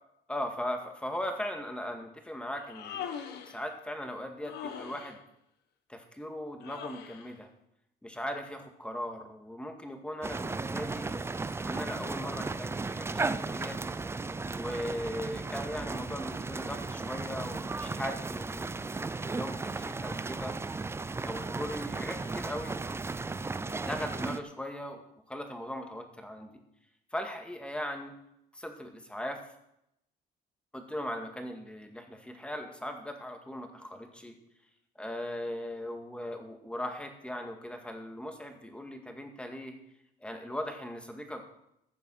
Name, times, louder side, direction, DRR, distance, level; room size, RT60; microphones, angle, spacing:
voice 1, 0.3-3.1 3.5-5.2 5.9-7.5 8.0-11.1 11.6-13.8 14.5-20.5 21.2-22.8 23.8-25.0 25.3-26.6 27.1-28.1 28.5-29.4 30.7-34.4 35.0-39.7 40.2-41.4, left 1 dB, 5° left, 4 dB, 2.0 m, -39 dB
Human voice, 2.6-3.6 4.4-5.2 6.6-7.3, left 8 dB, 75° left, 1.4 m, -41 dB
sound 1, 10.2-24.4, right 3 dB, 15° right, 0.6 m, -35 dB
15.0 x 6.8 x 6.4 m, 0.81 s
cardioid pair, 110°, 17 cm